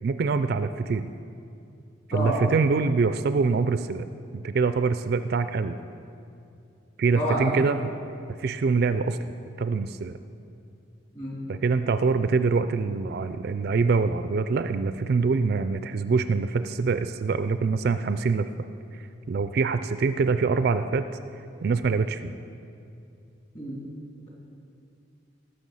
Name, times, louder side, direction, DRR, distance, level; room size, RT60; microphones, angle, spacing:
voice 1, 0.0-1.1 2.1-4.1 4.4-5.8 7.0-7.9 8.4-9.2 9.6-10.2 11.5-18.5 19.3-21.1 21.6-22.3, right 4 dB, 50° right, 11 dB, 0.3 m, -24 dB
voice 2, 7.2-7.7 11.1-11.4 23.5-23.8, equal, 30° left, -4 dB, 3.0 m, -28 dB
19.0 x 6.7 x 5.5 m, 2.6 s
head